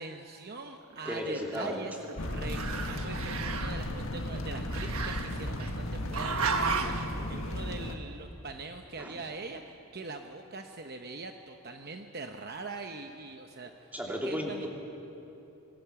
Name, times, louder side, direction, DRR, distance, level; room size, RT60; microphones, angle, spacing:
voice 1, 0.0-14.7, right 3 dB, 45° right, 5 dB, 0.9 m, -42 dB
Growling, 0.9-2.1 2.4-3.9 4.7-5.7 6.1-7.1, right 5 dB, 70° right, 1.4 m, -34 dB
voice 2, 1.0-1.8 9.0-9.1 13.9-14.7, equal, 5° right, -1 dB, 2.9 m, -34 dB
sound 1, 2.2-8.0, left 1 dB, 60° left, 1.7 m, -35 dB
25.5 x 20.5 x 7.0 m, 3.0 s
head